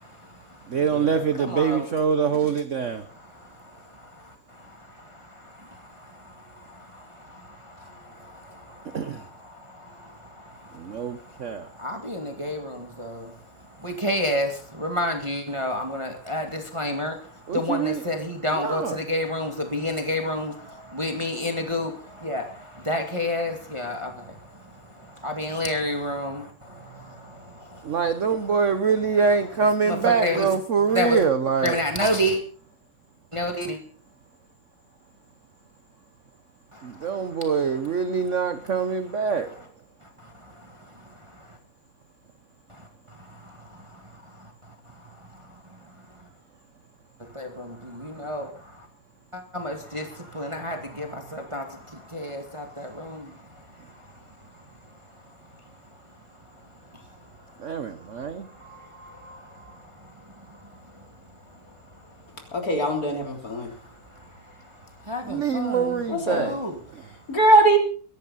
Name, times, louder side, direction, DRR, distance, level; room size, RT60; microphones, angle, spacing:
voice 1, 0.0-1.9 2.8-28.2 29.8-30.6 30.9-31.2 31.6-32.4 33.3-33.8 36.7-38.7 39.2-39.7 40.0-41.6 42.7-46.3 47.2-48.9 49.3-62.7 63.4-66.0 66.3-67.4, left 1 dB, 15° right, 2.0 m, -33 dB
voice 2, 0.7-3.1 8.9-9.3 10.7-11.7 17.5-18.0 18.5-19.0 27.8-31.8 36.8-39.6 57.6-58.5 65.3-66.6, right 6 dB, 50° right, 0.9 m, -24 dB
voice 3, 62.5-63.7 66.1-66.5 67.3-67.8, right 2 dB, 40° left, 4.0 m, -20 dB
22.5 x 11.0 x 4.2 m
omnidirectional pair, 2.3 m